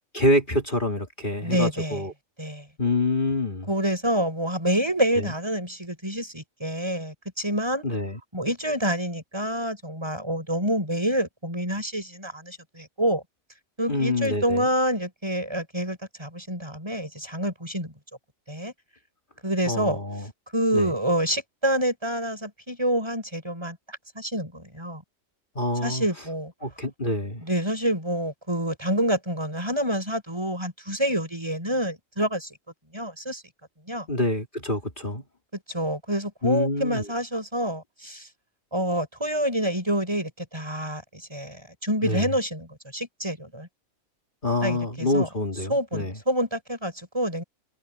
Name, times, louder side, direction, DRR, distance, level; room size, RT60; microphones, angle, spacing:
voice 1, 0.1-2.1 2.8-3.7 5.2-5.3 7.8-8.2 13.9-14.7 19.7-20.3 20.7-20.9 25.5-26.0 26.6-27.4 34.1-35.2 36.4-37.0 42.0-42.3 44.4-46.1, left 2 dB, 35° left, 2.8 m, -26 dB
voice 2, 1.4-2.0 2.4-2.7 3.7-7.8 8.3-13.2 13.8-17.9 18.5-18.7 19.4-20.0 20.5-25.0 25.8-26.5 27.4-32.5 32.9-33.4 33.9-34.1 35.7-38.3 38.7-43.7 44.6-45.3 45.7-47.4, equal, 20° right, 6.7 m, -27 dB
omnidirectional pair, 1.4 m